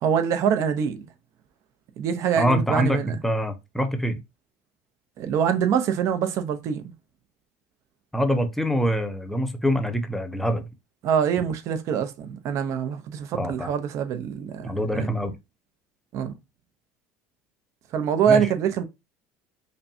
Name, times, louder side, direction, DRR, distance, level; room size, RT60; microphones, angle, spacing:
voice 1, 0.0-1.0 2.0-3.2 5.2-6.8 11.0-15.1 16.1-16.4 17.9-18.8, right 8 dB, 55° right, 0.7 m, -24 dB
voice 2, 2.4-4.2 8.1-10.7 13.3-13.7 14.6-15.3 18.3-18.5, equal, 5° left, 0.7 m, -25 dB
5.2 x 2.2 x 2.7 m
supercardioid pair, 110°, 6 cm